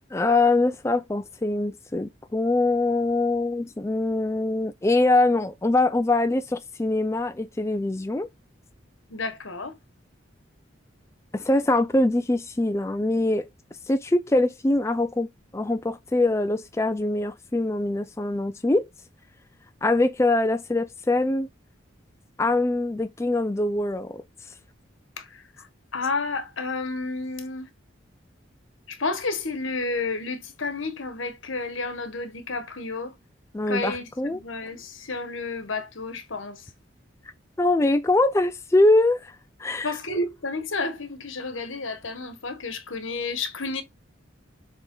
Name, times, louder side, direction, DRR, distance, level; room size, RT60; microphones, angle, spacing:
voice 1, 0.1-8.3 11.3-13.5 13.9-18.9 19.8-21.5 22.4-24.2 33.5-34.4 37.6-39.9, left 2 dB, 15° left, 0.3 m, -23 dB
voice 2, 9.1-9.7 25.2-27.7 28.9-33.1 33.7-36.7 39.8-43.8, left 3 dB, 80° left, 1.4 m, -31 dB
7.2 x 3.6 x 3.8 m
head